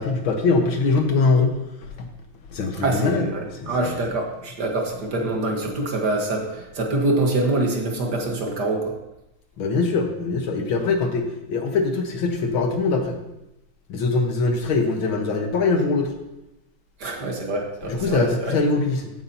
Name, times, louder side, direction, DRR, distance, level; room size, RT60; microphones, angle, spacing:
voice 1, 0.0-1.5 2.0-2.1 2.5-3.3 3.6-3.7 9.6-13.2 13.9-16.1 17.9-19.1, left 3 dB, 70° left, 3 dB, 2.0 m, -22 dB
voice 2, 2.8-8.9 17.0-18.6, right 2 dB, 55° right, 1 dB, 1.9 m, -25 dB
14.0 x 9.5 x 2.8 m, 0.89 s
omnidirectional pair, 2.3 m